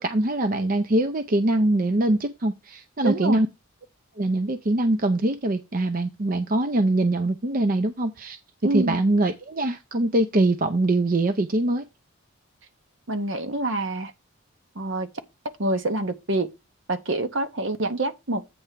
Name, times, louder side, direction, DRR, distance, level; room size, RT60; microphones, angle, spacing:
voice 1, 0.0-3.5 4.2-8.4 8.7-11.8, right 2 dB, 40° right, 0.6 m, -23 dB
voice 2, 3.0-3.4 8.6-9.0 13.1-14.1 14.7-15.1 15.6-16.5 16.9-18.4, right 2 dB, 60° right, 1.0 m, -26 dB
8.6 x 3.4 x 6.7 m
head